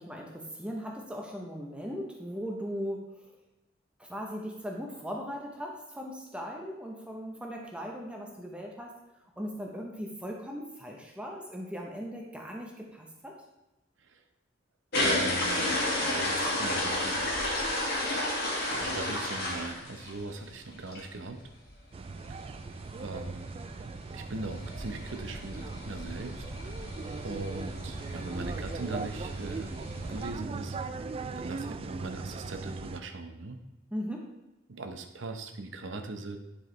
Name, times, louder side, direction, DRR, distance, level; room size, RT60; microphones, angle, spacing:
voice 1, 0.0-3.4 4.0-8.9 9.4-13.3 33.9-34.3, equal, 5° right, 0 dB, 0.8 m, -38 dB
sound 1, 14.9-20.4 20.8-21.0 21.4-21.5 21.7-21.8 22.0-30.3, left 1 dB, 55° left, 2.1 m, -33 dB
voice 2, 15.0-17.2 18.6-21.4 22.3-22.4 23.0-23.5 24.1-26.8 27.2-33.6 34.7-36.4, right 2 dB, 70° right, 6 dB, 0.8 m, -40 dB
sound 2, 21.9-33.0, right 4 dB, 30° right, 0.3 m, -39 dB
10.5 x 4.8 x 3.2 m, 0.99 s
head